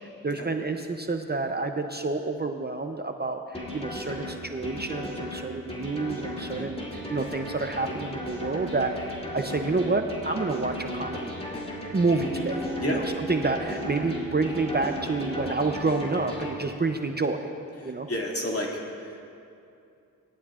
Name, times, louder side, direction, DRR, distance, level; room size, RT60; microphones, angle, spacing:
voice 1, 0.2-11.3 11.9-13.0 13.3-17.5 17.8-18.1, right 3 dB, 30° right, 5 dB, 0.7 m, -29 dB
sound 1, 3.5-16.5, equal, 15° left, 2.6 m, -36 dB
voice 2, 6.4-6.7 12.8-13.0 17.8-19.3, left 1 dB, 40° left, -2 dB, 2.4 m, -32 dB
sound 2, 12.1-15.8 16.2-16.3, right 3 dB, 70° right, 2.8 m, -39 dB
19.0 x 11.5 x 2.5 m, 2.6 s
cardioid pair, 45°, 36 cm